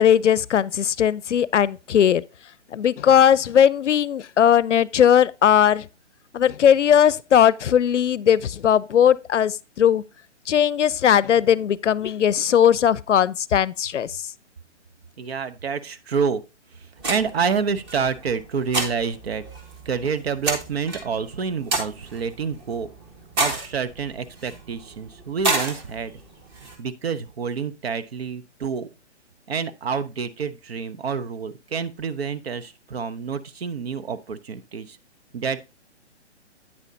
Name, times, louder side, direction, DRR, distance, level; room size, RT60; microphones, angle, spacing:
voice 1, 0.0-2.2 2.7-5.9 6.3-10.0 10.5-14.2, left 9 dB, 80° left, 0.6 m, -18 dB
voice 2, 15.2-16.4 16.7-19.4 19.8-22.9 23.4-26.1 26.8-28.9 29.5-35.0 35.3-35.6, right 6 dB, 60° right, 0.9 m, -28 dB
sound 1, 17.0-26.8, right 2 dB, 20° right, 1.4 m, -31 dB
8.9 x 7.8 x 2.7 m
hypercardioid pair, 145°, 35 cm